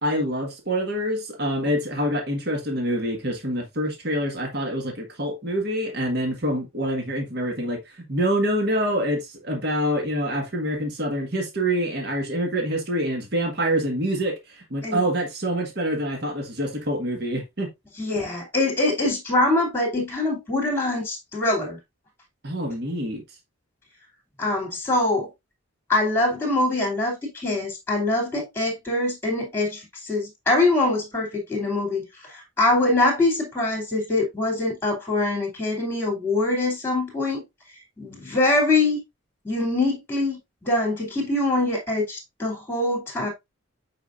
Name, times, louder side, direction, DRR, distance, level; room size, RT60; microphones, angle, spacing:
voice 1, 0.0-17.7 22.4-23.2, equal, 50° right, 1.6 m, -26 dB
voice 2, 18.0-21.8 24.4-25.3 25.9-37.4 38.0-39.0 39.4-43.3, left 2 dB, 10° left, 2.8 m, -24 dB
8.2 x 5.0 x 2.5 m
head